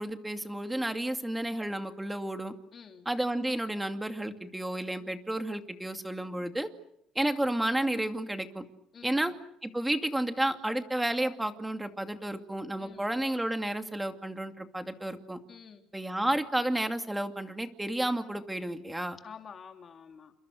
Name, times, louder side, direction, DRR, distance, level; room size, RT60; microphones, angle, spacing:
voice 1, 0.0-2.5 3.1-6.7 7.2-8.6 9.0-9.3 9.6-15.4 15.9-19.2, right 1 dB, 5° right, 7 dB, 2.4 m, -31 dB
voice 2, 2.7-3.1 8.9-9.3 12.8-13.1 15.5-15.9 19.2-20.3, left 6 dB, 35° left, 4 dB, 3.7 m, -49 dB
30.0 x 27.5 x 6.4 m, 0.73 s
cardioid pair, 135°, 0 cm